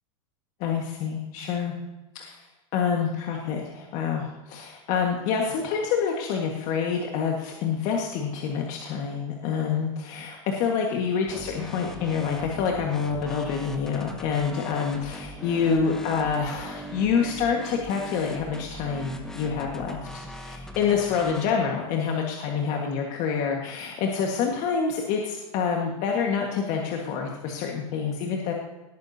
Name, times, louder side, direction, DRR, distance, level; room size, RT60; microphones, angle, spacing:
voice 1, 0.6-1.7 2.2-2.5 2.7-28.5, left 6 dB, 45° left, 0 dB, 1.7 m, -27 dB
sound 1, 11.3-21.5, right 1 dB, 5° left, 1.0 m, -40 dB
18.0 x 9.2 x 2.8 m, 1.0 s
supercardioid pair, 135°, 17 cm